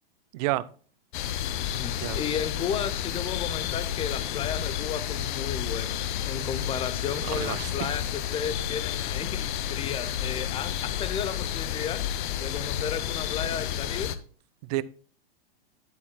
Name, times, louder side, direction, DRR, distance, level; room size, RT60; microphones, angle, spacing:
voice 1, 0.3-0.6 2.0-2.2 7.2-7.9 14.7-14.8, right 17 dB, 45° right, 0.5 m, -29 dB
sound 1, 1.1-14.2, left 10 dB, 55° left, 0.7 m, -31 dB
voice 2, 1.8-12.0 12.4-14.1, left 7 dB, 20° left, 0.6 m, -34 dB
10.5 x 8.2 x 2.2 m
hypercardioid pair, 120°, 29 cm